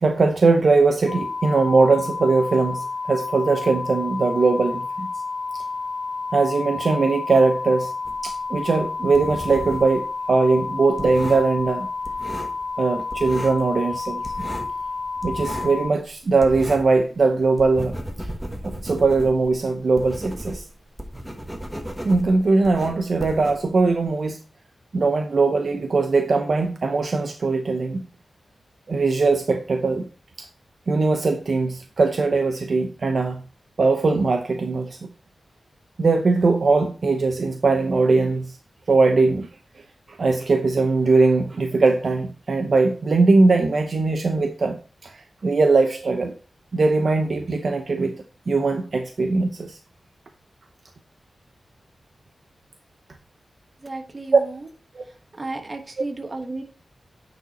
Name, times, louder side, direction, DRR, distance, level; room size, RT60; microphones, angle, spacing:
voice 1, 0.0-5.1 5.5-5.6 6.3-7.9 8.2-11.9 12.8-14.5 15.2-18.3 18.6-20.6 22.0-24.4 24.9-28.1 28.9-30.1 30.4-30.5 30.9-33.5 33.8-35.0 36.0-38.6 38.9-39.5 40.1-46.3 46.7-49.8 54.9-55.0, right 3 dB, 60° right, 0.7 m, -20 dB
sound 1, 1.1-15.9, left 4 dB, 55° left, 0.6 m, -30 dB
sound 2, 8.0-10.0 10.3-12.8 13.1-13.7 13.9-17.0 17.3-24.0, equal, 5° right, 1.2 m, -35 dB
voice 2, 53.8-54.7 55.3-56.6, right 2 dB, 35° right, 1.2 m, -33 dB
8.9 x 4.3 x 4.1 m
wide cardioid pair, 110°, 0 cm